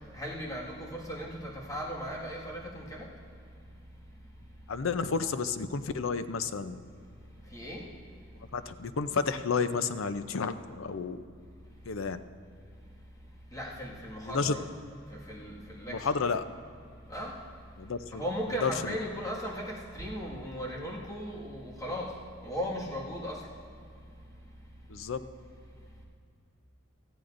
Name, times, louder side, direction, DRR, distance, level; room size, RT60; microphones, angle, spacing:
voice 1, 0.1-3.1 7.5-7.9 13.5-14.6 15.1-16.3 17.1-17.4 18.1-22.2 22.4-23.5, equal, 15° left, -4 dB, 1.8 m, -37 dB
voice 2, 4.7-6.8 8.5-11.2 11.9-12.2 14.3-14.6 15.9-16.4 17.8-18.2 18.6-19.0 24.9-25.2, left 5 dB, 90° left, 11 dB, 0.6 m, -31 dB
18.0 x 14.0 x 2.6 m, 2.4 s
head